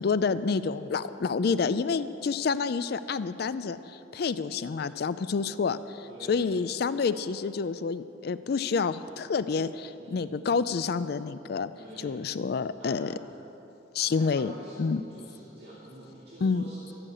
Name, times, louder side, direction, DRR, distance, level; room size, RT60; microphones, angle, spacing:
voice 1, 0.0-11.7 12.0-13.1 13.9-14.5 14.8-15.0 16.4-16.6, left 5 dB, 55° left, 14 dB, 0.4 m, -28 dB
voice 2, 6.1-6.5 10.0-10.4 11.7-12.2 12.8-13.0 13.9-16.9, right 1 dB, 60° right, -8 dB, 2.0 m, -48 dB
13.0 x 6.6 x 8.7 m, 3.0 s
head